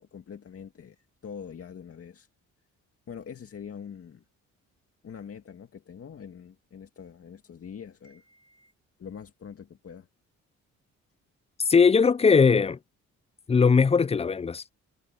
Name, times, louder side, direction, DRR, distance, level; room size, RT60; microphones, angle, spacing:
voice 1, 0.0-2.3 3.1-4.2 5.0-8.7 9.0-10.1, left 7 dB, 50° left, 2.2 m, -44 dB
voice 2, 11.6-12.8 13.5-14.6, left 5 dB, 20° left, 0.4 m, -20 dB
cardioid pair, 90°, 30 cm